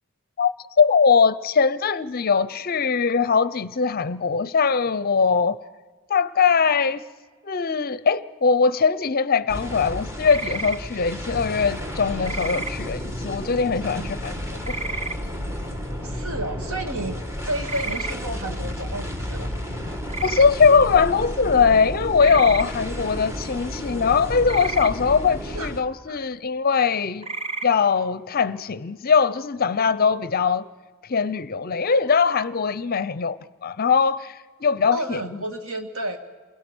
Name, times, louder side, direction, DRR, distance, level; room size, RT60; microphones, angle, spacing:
voice 1, 0.8-5.6 6.1-7.0 7.4-14.4 14.7-14.8 20.2-27.3 27.6-30.7 31.1-35.2, left 5 dB, 45° left, 0.6 m, -21 dB
sound 1, 9.5-25.8, left 1 dB, 10° right, 1.5 m, -32 dB
sound 2, 10.2-10.8 12.2-12.7 14.6-15.2 17.6-18.1 20.1-20.5 22.2-22.6 24.5-24.9 27.2-27.7, right 3 dB, 30° right, 0.7 m, -31 dB
voice 2, 16.0-19.5 25.5-25.7 26.1-26.2 34.9-36.2, right 1 dB, 70° right, 2.1 m, -31 dB
28.5 x 22.5 x 6.2 m
head